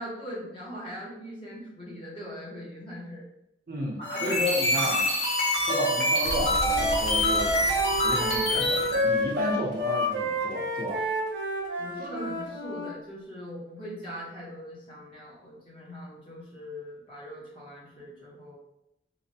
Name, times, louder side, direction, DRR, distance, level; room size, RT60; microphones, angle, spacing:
voice 1, 0.0-3.3 4.0-4.5 4.7-4.9 11.8-18.5, equal, 30° left, -6 dB, 0.8 m, -40 dB
voice 2, 3.7-5.1 5.7-7.5 7.8-11.0, equal, 50° right, -2 dB, 0.6 m, -32 dB
sound 1, 4.0-9.1, left 1 dB, 85° left, 0.7 m, -26 dB
sound 2, 6.2-10.1, left 1 dB, 60° left, 0.4 m, -37 dB
Wind instrument woodwind instrument, 6.6-12.9, left 1 dB, 90° right, 0.7 m, -30 dB
3.1 x 2.0 x 2.6 m, 0.85 s
head